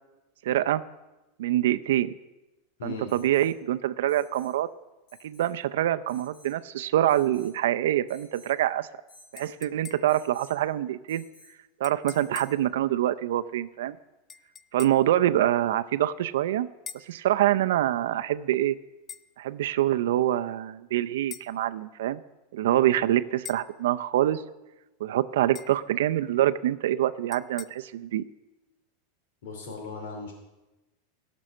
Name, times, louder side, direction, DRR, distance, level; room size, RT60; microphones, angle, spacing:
voice 1, 0.4-0.8 1.4-2.2 2.8-4.7 5.2-8.9 9.3-11.2 11.8-14.0 14.7-16.7 17.1-18.8 19.4-22.2 22.5-24.4 25.0-28.2, right 12 dB, 75° right, 12 dB, 0.5 m, -25 dB
voice 2, 2.8-3.1 29.4-30.3, left 3 dB, 85° left, 2 dB, 2.6 m, -37 dB
Alarm, 3.1-3.5 4.1-4.6 5.1-5.5 6.1-6.6 7.1-7.6 8.1-8.6 9.1-9.5 10.1-10.6 11.1-11.6 12.1-12.6 14.3-14.4, left 2 dB, 45° left, 3.8 m, -55 dB
sound 1, 9.4-10.3 11.8-12.7 14.3-15.1 16.9-17.2 19.1-19.3 21.3-21.5 23.4-23.8 25.5-25.9 27.3-27.7, left 7 dB, 15° left, 0.3 m, -44 dB
16.5 x 6.2 x 6.4 m, 1.1 s
supercardioid pair, 175°, 0 cm